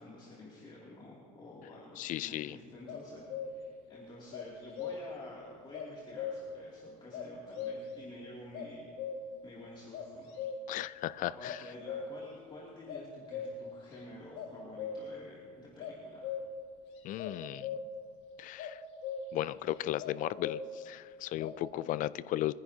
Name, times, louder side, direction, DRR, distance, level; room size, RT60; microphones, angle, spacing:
voice 1, 0.0-8.9 9.4-10.5 11.2-16.4, left 2 dB, 25° left, -5 dB, 2.6 m, -50 dB
voice 2, 2.0-2.6 10.7-11.6 17.0-17.8 18.4-18.8 19.3-22.5, left 14 dB, 50° left, 18 dB, 0.4 m, -36 dB
sound 1, 2.9-3.8 4.3-5.3 5.7-6.7 7.1-8.1 8.5-9.5 9.9-10.9 11.4-12.4 12.9-14.0 14.3-15.3 15.8-16.7 17.2-18.1 18.6-19.5 20.0-20.9 21.4-21.6, left 6 dB, 70° left, 2.0 m, -40 dB
22.5 x 10.5 x 2.8 m, 2.1 s
supercardioid pair, 110°, 18 cm